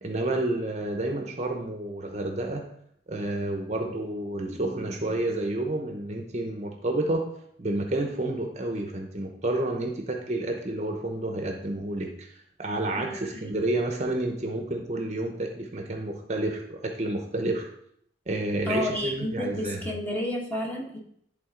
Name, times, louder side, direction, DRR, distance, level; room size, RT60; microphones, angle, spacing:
voice 1, 0.0-2.7 3.1-7.2 7.6-12.3 12.6-17.7 18.3-19.9, right 2 dB, 40° right, 3 dB, 0.8 m, -30 dB
voice 2, 13.0-13.6 18.7-21.0, left 1 dB, 10° left, -2 dB, 1.3 m, -31 dB
11.0 x 3.7 x 3.7 m, 0.68 s
head